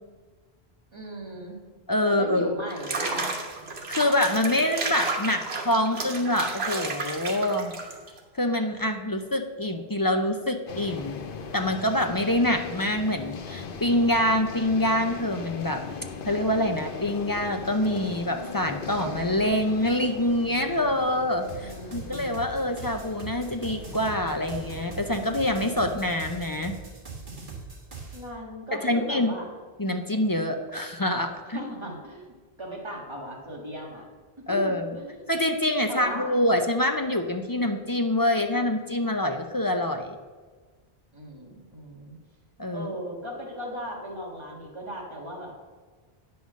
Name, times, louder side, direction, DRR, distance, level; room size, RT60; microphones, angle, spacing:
voice 1, 0.9-1.6 2.0-3.4 21.6-22.4 28.1-29.5 31.5-34.1 34.5-35.2 35.9-36.4 41.1-42.2 42.7-45.5, equal, 25° right, -2 dB, 1.8 m, -37 dB
voice 2, 1.9-2.5 3.9-7.7 8.3-11.2 11.5-15.8 16.3-26.7 28.7-29.3 29.8-31.6 34.5-34.9 35.3-40.2 42.6-42.9, left 1 dB, 30° left, 5 dB, 0.4 m, -25 dB
Water / Bathtub (filling or washing), 2.7-8.2, right 3 dB, 80° right, 1.4 m, -32 dB
sound 1, 10.7-26.0, left 5 dB, 60° left, 0.9 m, -40 dB
sound 2, 21.5-28.3, right 4 dB, 55° right, 1.7 m, -41 dB
9.5 x 5.5 x 6.2 m, 1.4 s
omnidirectional pair, 1.0 m